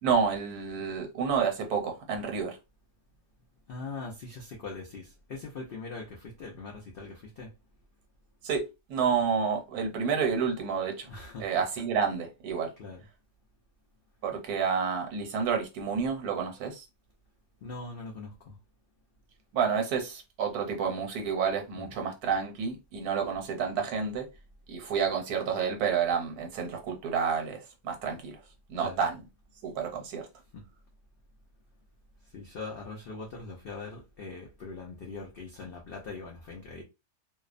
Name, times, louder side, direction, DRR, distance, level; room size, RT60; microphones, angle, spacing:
voice 1, 0.0-2.6 8.4-11.1 11.4-12.7 14.2-16.8 19.5-24.3 24.7-28.4 28.7-29.2 29.6-30.3, right 6 dB, 80° right, 1.2 m, -29 dB
voice 2, 3.7-7.5 11.1-11.5 12.8-13.0 17.6-18.6 21.7-21.9 28.8-29.0 30.5-30.6 32.3-36.8, left 3 dB, 75° left, 0.5 m, -41 dB
2.7 x 2.0 x 2.4 m
omnidirectional pair, 1.6 m